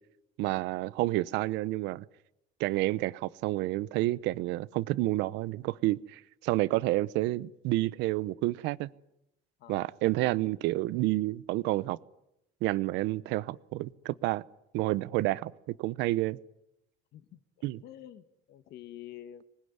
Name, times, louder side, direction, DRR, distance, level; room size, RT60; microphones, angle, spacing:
voice 1, 0.4-2.0 2.6-8.9 9.7-12.0 12.6-14.4 14.7-16.4 17.6-17.8, right 18 dB, 90° right, 0.9 m, -29 dB
voice 2, 9.6-10.0 17.1-19.4, left 12 dB, 70° left, 1.9 m, -48 dB
25.5 x 20.5 x 9.6 m
cardioid pair, 130°, 18 cm